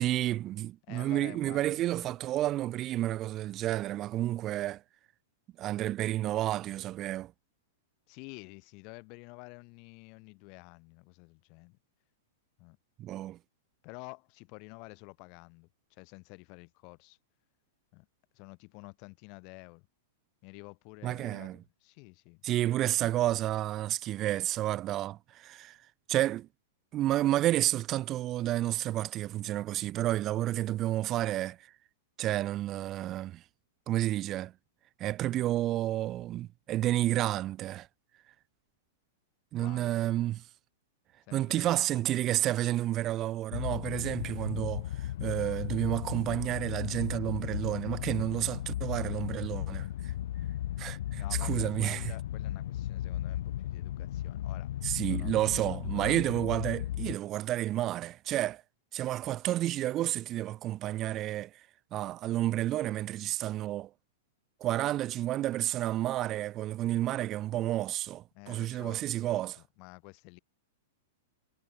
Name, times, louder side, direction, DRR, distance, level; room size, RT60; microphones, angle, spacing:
voice 1, 0.0-4.8 5.6-7.3 13.0-13.4 21.0-21.6 22.4-25.8 26.1-26.5 26.9-31.6 32.2-33.4 33.9-34.5 35.0-37.9 39.5-40.4 41.3-49.9 50.8-52.0 54.8-58.6 58.9-61.5 61.9-63.9 64.6-69.6, right 14 dB, 25° right, 0.5 m, -30 dB
voice 2, 0.9-2.1 8.1-11.8 12.6-12.8 13.8-17.2 17.9-18.1 18.3-19.9 20.4-23.0 39.6-40.0 41.3-42.3 51.1-54.7 55.1-56.4 68.3-70.4, left 34 dB, 40° left, 6.1 m, -50 dB
sound 1, 43.5-57.1, left 12 dB, 65° left, 0.6 m, -35 dB
supercardioid pair, 155°, 0 cm